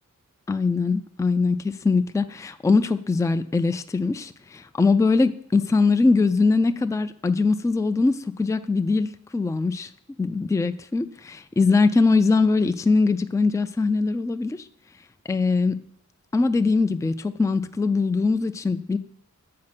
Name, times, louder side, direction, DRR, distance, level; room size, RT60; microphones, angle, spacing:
voice 1, 0.5-9.9 10.2-14.6 15.3-15.8 16.3-19.0, left 4 dB, 10° left, 11 dB, 0.4 m, -22 dB
7.6 x 4.4 x 5.8 m, 0.63 s
cardioid pair, 55°, 32 cm